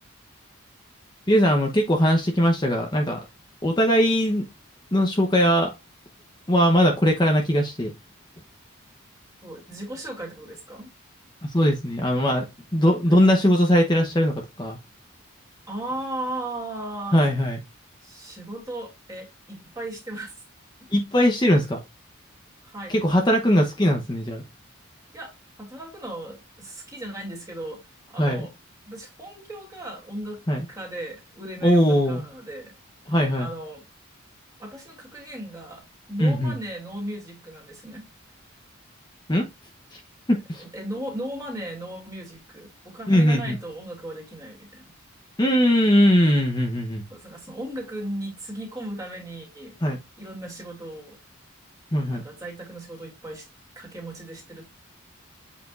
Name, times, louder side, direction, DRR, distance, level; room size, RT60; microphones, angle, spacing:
voice 1, 1.3-3.2 3.6-4.4 4.9-5.7 6.5-7.9 11.4-12.5 12.7-14.8 17.1-17.6 20.9-21.8 22.9-24.4 28.2-28.5 30.5-30.6 31.6-32.2 33.1-33.5 36.2-36.6 39.3-39.5 39.9-40.0 40.3-40.6 43.1-43.6 45.4-47.0 49.8-50.0 51.9-52.2, equal, 20° left, 0.8 m, -20 dB
voice 2, 9.4-10.9 13.1-13.3 15.7-17.3 18.0-20.3 22.6-23.0 25.1-25.3 25.6-27.8 28.1-28.5 28.9-30.4 30.7-32.7 33.4-33.8 34.6-35.8 36.1-38.1 40.6-44.8 47.1-49.8 50.2-51.2 52.1-53.5 53.7-54.6, right 1 dB, 15° right, 2.6 m, -36 dB
7.9 x 5.0 x 2.4 m
head